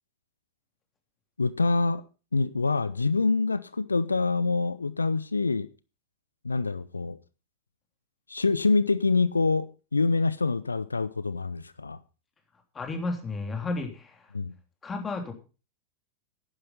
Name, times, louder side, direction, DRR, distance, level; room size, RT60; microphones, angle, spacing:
voice 1, 1.4-2.0 2.3-5.7 6.4-7.2 8.3-12.0 14.3-14.5, left 3 dB, 80° left, 0.6 m, -26 dB
voice 2, 12.5-14.3 14.8-15.3, left 3 dB, 20° left, 3.3 m, -33 dB
11.5 x 10.0 x 5.5 m
figure-of-eight pair, 90°, 0 cm